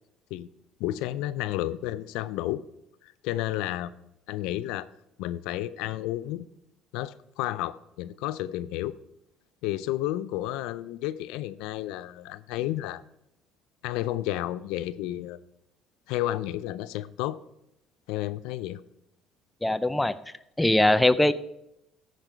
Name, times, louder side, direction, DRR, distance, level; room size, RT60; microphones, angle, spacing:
voice 1, 0.8-2.6 3.0-3.9 4.3-4.9 5.2-6.5 6.9-8.9 9.6-13.0 13.8-15.4 16.1-17.4 18.1-18.8, left 14 dB, 80° left, 15 dB, 0.4 m, -31 dB
voice 2, 19.6-20.1 20.6-21.3, left 1 dB, 10° left, 12 dB, 0.4 m, -21 dB
14.0 x 5.2 x 4.4 m, 0.85 s
supercardioid pair, 100°, 0 cm